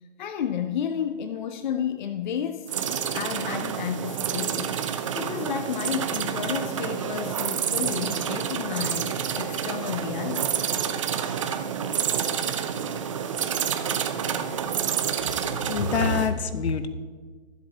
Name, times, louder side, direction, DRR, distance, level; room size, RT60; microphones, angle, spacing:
voice 1, 0.2-2.7 3.1-4.8 5.2-10.6, left 8 dB, 45° left, 9 dB, 0.5 m, -31 dB
sound 1, 2.7-16.3, right 8 dB, 30° right, 0.5 m, -28 dB
voice 2, 15.7-16.9, left 5 dB, 65° left, 11 dB, 1.0 m, -25 dB
24.0 x 8.1 x 2.8 m, 1.5 s
hypercardioid pair, 155°, 35 cm